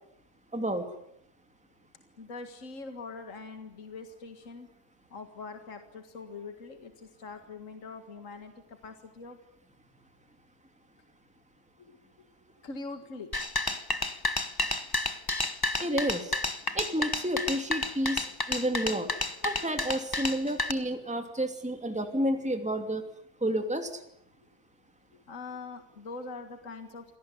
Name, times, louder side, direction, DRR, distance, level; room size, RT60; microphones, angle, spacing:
voice 1, 0.5-0.9 15.8-16.3 16.7-19.1 19.4-23.0 23.4-24.0, right 1 dB, 5° right, 6 dB, 2.6 m, -30 dB
voice 2, 2.2-4.7 5.1-9.4 11.8-12.3 12.6-13.4 25.1-27.1, left 3 dB, 55° left, 7 dB, 2.2 m, -43 dB
sound 1, 13.3-20.7, left 2 dB, 15° left, 1.2 m, -31 dB
26.5 x 18.0 x 9.9 m, 0.79 s
omnidirectional pair, 1.6 m